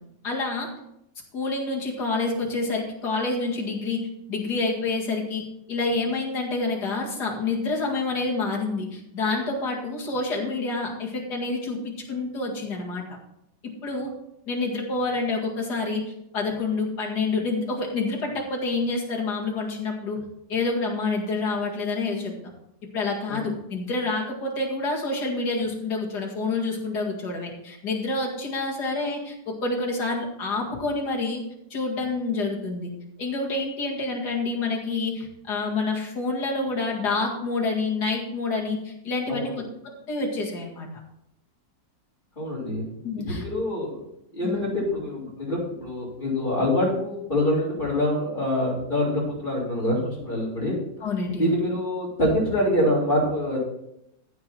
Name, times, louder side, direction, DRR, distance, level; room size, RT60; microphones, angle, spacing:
voice 1, 0.2-0.7 1.3-5.4 5.7-13.0 13.8-14.1 14.5-16.0 16.3-20.2 20.5-22.3 22.9-31.4 31.7-32.9 33.2-39.5 39.8-40.9 43.0-43.4 44.4-44.7 51.0-51.6, left 3 dB, 60° left, -1 dB, 2.7 m, -28 dB
voice 2, 42.4-42.9 43.3-44.0 44.3-50.8 51.4-53.6, left 1 dB, 30° left, -10 dB, 5.0 m, -25 dB
15.0 x 5.8 x 4.5 m, 0.81 s
omnidirectional pair, 2.0 m